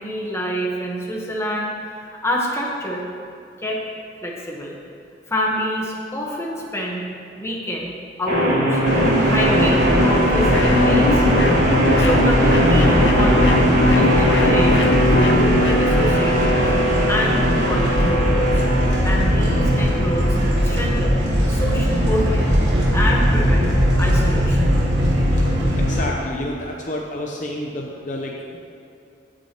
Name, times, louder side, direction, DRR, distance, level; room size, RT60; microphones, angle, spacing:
voice 1, 0.0-3.1 3.6-3.8 4.2-4.8 5.3-7.1 7.3-8.8 9.2-11.2 12.0-13.7 13.9-14.8 15.1-16.7 17.1-18.6 19.0-22.6 22.9-24.8, equal, 15° left, -2 dB, 1.2 m, -27 dB
sound 1, 8.3-21.3, equal, 45° right, 1.9 m, -20 dB
sound 2, 8.8-26.0, equal, 80° right, 2.3 m, -20 dB
sound 3, 10.5-15.8, left 2 dB, 75° left, 0.6 m, -23 dB
voice 2, 25.7-28.8, left 1 dB, 45° left, -1 dB, 0.7 m, -29 dB
17.0 x 6.2 x 3.0 m, 2.6 s
head